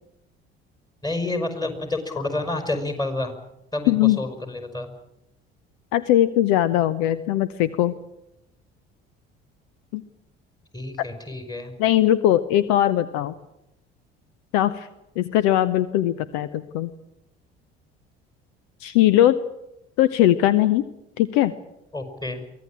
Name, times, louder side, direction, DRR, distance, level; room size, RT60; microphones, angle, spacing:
voice 1, 1.0-3.3 3.7-4.9 10.7-11.7 21.9-22.4, left 2 dB, 10° left, 7 dB, 5.3 m, -29 dB
voice 2, 3.9-4.2 5.9-7.9 9.9-10.0 11.8-13.3 14.5-14.9 15.2-16.9 18.8-19.4 20.0-20.8 21.2-21.5, left 13 dB, 60° left, 16 dB, 0.9 m, -20 dB
23.5 x 17.0 x 8.7 m, 0.89 s
figure-of-eight pair, 55°, 32 cm